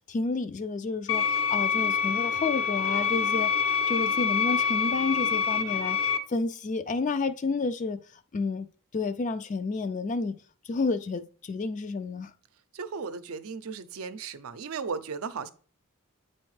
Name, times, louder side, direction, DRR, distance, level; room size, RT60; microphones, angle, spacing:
voice 1, 0.1-3.5 3.9-6.0 6.3-8.0 8.3-8.7 8.9-10.4 10.7-12.3, left 3 dB, 35° left, 0.3 m, -30 dB
sound 1, 1.1-6.2, left 6 dB, 80° left, 0.9 m, -26 dB
voice 2, 12.7-15.5, right 5 dB, 75° right, 0.5 m, -36 dB
8.5 x 4.2 x 3.2 m
head